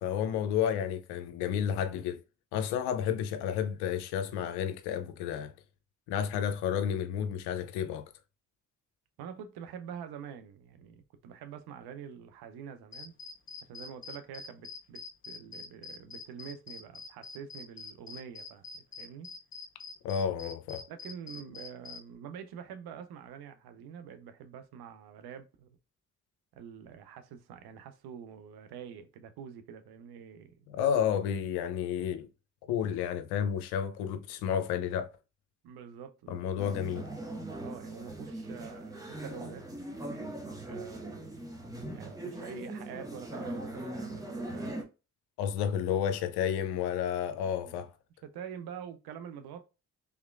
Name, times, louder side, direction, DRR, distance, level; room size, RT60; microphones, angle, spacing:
voice 1, 0.0-2.2 2.5-5.5 6.1-8.1 20.0-20.8 30.7-32.3 32.7-35.1 36.3-37.1 45.4-47.9, left 8 dB, 80° left, 0.6 m, -31 dB
voice 2, 9.2-13.1 13.6-19.3 20.9-25.8 26.5-30.7 32.7-32.8 35.6-36.5 37.6-39.7 40.0-41.3 41.9-44.8 47.4-47.9 48.2-49.6, right 8 dB, 75° right, 0.7 m, -46 dB
sound 1, 12.9-22.0, left 4 dB, 30° left, 0.9 m, -44 dB
sound 2, 36.6-44.8, right 1 dB, 10° right, 1.1 m, -40 dB
3.5 x 3.1 x 2.4 m
hypercardioid pair, 45°, 38 cm